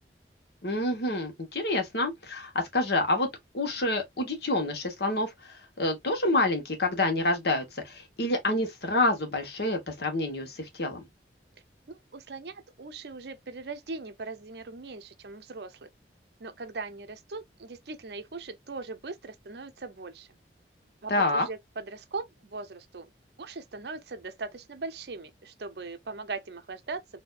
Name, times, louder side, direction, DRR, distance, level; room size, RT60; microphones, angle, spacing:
voice 1, 0.6-3.3 3.5-11.1 21.1-21.5, left 2 dB, 70° left, 1.2 m, -28 dB
voice 2, 11.9-15.9 16.4-20.3 21.0-23.1 23.4-27.0, right 3 dB, 70° right, 0.6 m, -40 dB
4.4 x 2.7 x 2.4 m
head